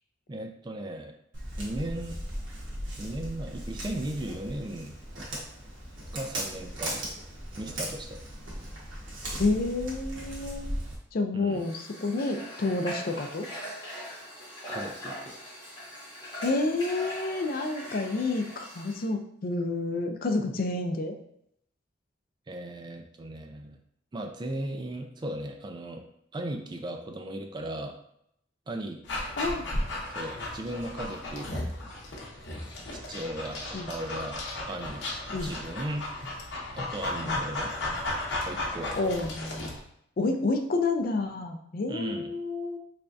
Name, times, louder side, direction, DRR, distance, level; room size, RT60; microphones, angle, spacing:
voice 1, 0.3-1.1 1.6-2.2 3.0-4.9 6.1-7.0 7.6-8.2 11.3-11.6 14.7-15.4 22.5-23.8 24.1-26.1 26.3-28.0 28.7-29.0 30.1-31.6 32.9-34.4 34.7-35.1 35.4-36.1 36.8-37.7 38.5-38.9 41.9-42.3, right 1 dB, 25° right, 4 dB, 0.3 m, -36 dB
Walk footsteps, 1.3-10.9, right 1 dB, 85° right, 1.2 m, -38 dB
voice 2, 9.4-10.7 11.1-13.5 16.4-21.1 29.4-29.7 33.7-33.9 35.3-35.5 37.2-37.4 38.9-39.8 40.2-42.8, left 3 dB, 50° left, 5 dB, 0.4 m, -29 dB
Water / Water tap faucet, 11.5-19.1, equal, 25° left, 1.4 m, -41 dB
Dog, 29.1-39.8, left 1 dB, 70° left, 0.8 m, -35 dB
3.5 x 3.3 x 2.6 m, 0.75 s
head